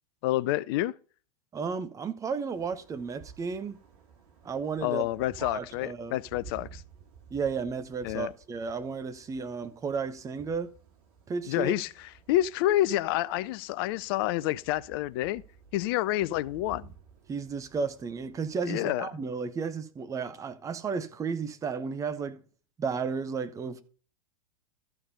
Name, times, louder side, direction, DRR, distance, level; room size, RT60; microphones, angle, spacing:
voice 1, 0.2-0.9 4.8-6.8 8.0-8.3 11.5-15.4 15.7-16.9 18.7-19.1, left 15 dB, 40° left, 0.4 m, -28 dB
voice 2, 1.5-3.8 4.4-5.1 5.4-6.2 7.3-10.7 11.3-11.7 17.3-22.4 22.8-23.8, right 5 dB, 15° right, 0.9 m, -33 dB
sound 1, 2.5-18.7, right 5 dB, 45° right, 2.9 m, -54 dB
13.5 x 4.6 x 5.2 m
figure-of-eight pair, 90°, 18 cm